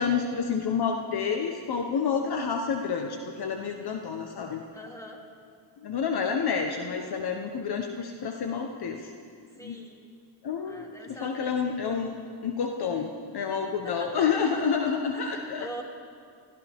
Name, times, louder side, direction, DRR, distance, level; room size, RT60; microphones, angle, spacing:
voice 1, 0.0-4.6 5.8-9.1 9.6-9.8 10.4-10.8 11.1-12.2 12.4-15.8, left 6 dB, 55° left, 3 dB, 1.2 m, -29 dB
voice 2, 4.7-5.2 9.5-10.0 10.6-11.5 13.8-14.6 15.1-15.3 15.6-15.8, right 1 dB, 5° left, -1 dB, 2.9 m, -42 dB
22.0 x 15.0 x 3.6 m, 2.2 s
cardioid pair, 80°, 47 cm